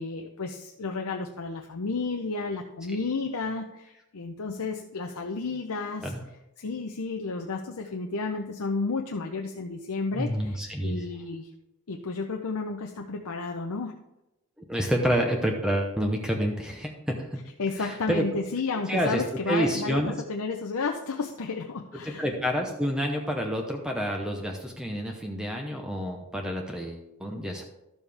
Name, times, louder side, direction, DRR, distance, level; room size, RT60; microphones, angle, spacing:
voice 1, 0.0-6.1 6.6-11.5 11.9-13.9 17.6-22.2, left 4 dB, 75° left, 2 dB, 0.7 m, -32 dB
voice 2, 10.1-11.0 14.7-17.4 17.8-18.2 18.9-20.2 22.0-27.6, equal, 5° right, 1 dB, 0.8 m, -28 dB
12.5 x 7.2 x 3.4 m, 0.93 s
head